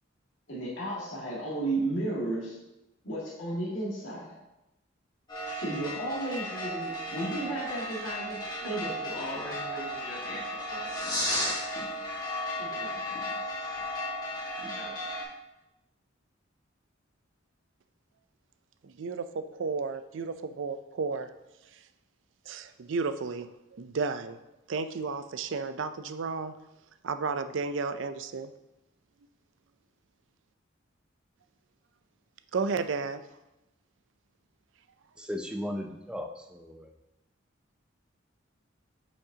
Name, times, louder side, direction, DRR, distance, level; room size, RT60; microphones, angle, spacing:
voice 1, 0.5-2.6 3.0-4.3 5.5-11.5 12.6-13.7 14.7-15.0, right 1 dB, 70° left, -6 dB, 2.1 m, -35 dB
sound 1, 5.3-15.2, equal, 20° left, 1.6 m, -34 dB
voice 2, 18.8-21.3 22.5-24.4 24.7-26.5 27.0-28.5 32.5-33.2, right 4 dB, 70° right, 11 dB, 0.4 m, -33 dB
voice 3, 35.2-36.9, left 1 dB, 5° right, 4 dB, 0.5 m, -36 dB
8.6 x 5.3 x 2.8 m, 0.93 s
head